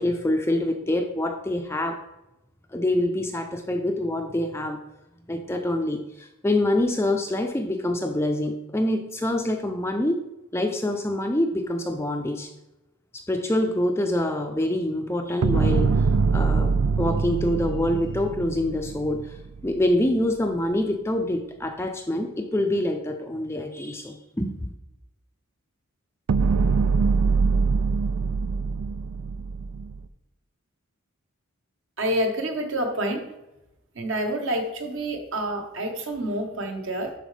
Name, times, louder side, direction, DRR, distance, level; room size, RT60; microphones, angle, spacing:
voice 1, 0.0-2.0 2.7-4.8 5.3-10.2 10.5-12.5 13.1-16.0 16.3-19.3 19.6-24.7, left 1 dB, 10° left, 4 dB, 0.5 m, -26 dB
sound 1, 15.4-19.7 26.3-30.0, right 4 dB, 85° right, 0.4 m, -23 dB
voice 2, 32.0-33.3 33.9-37.1, right 1 dB, 60° right, 3 dB, 1.3 m, -28 dB
11.5 x 4.6 x 3.3 m, 0.95 s
head